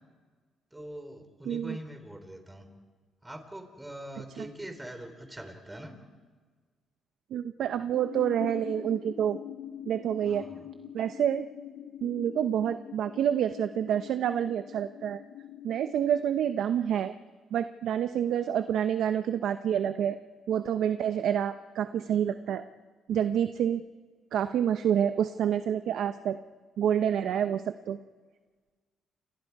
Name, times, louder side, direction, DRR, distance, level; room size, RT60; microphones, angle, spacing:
voice 1, 0.7-2.6 3.2-5.9 10.2-10.7, right 1 dB, 10° right, 6 dB, 4.1 m, -43 dB
voice 2, 1.5-1.8 4.4-4.5 7.3-9.4 9.9-10.5 10.9-11.5 12.0-15.2 15.6-17.1 17.5-20.2 20.5-22.7 23.1-23.8 24.3-26.4 26.8-28.0, right 9 dB, 75° right, 10 dB, 0.8 m, -28 dB
sound 1, 7.9-16.0, left 11 dB, 90° left, 1.5 m, -44 dB
30.0 x 27.5 x 4.8 m, 1.5 s
cardioid pair, 90°, 0 cm